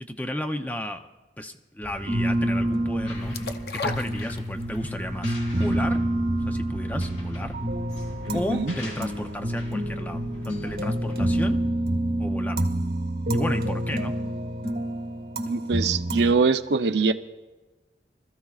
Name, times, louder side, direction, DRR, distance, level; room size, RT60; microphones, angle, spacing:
voice 1, 0.1-1.1 1.4-3.4 3.7-6.0 6.5-7.5 8.3-11.6 12.2-12.6 13.3-14.1 15.6-15.7, left 1 dB, 10° left, 6 dB, 0.6 m, -33 dB
sound 1, 1.8-11.6, equal, 40° left, 3.7 m, -39 dB
sound 2, 2.1-16.3, right 1 dB, 55° right, 1.1 m, -28 dB
sound 3, 3.3-4.9 5.2-5.3, left 3 dB, 60° left, 0.8 m, -33 dB
voice 2, 8.3-8.7 15.5-17.1, right 4 dB, 75° right, 9 dB, 0.7 m, -23 dB
25.0 x 14.0 x 2.4 m, 1.2 s
head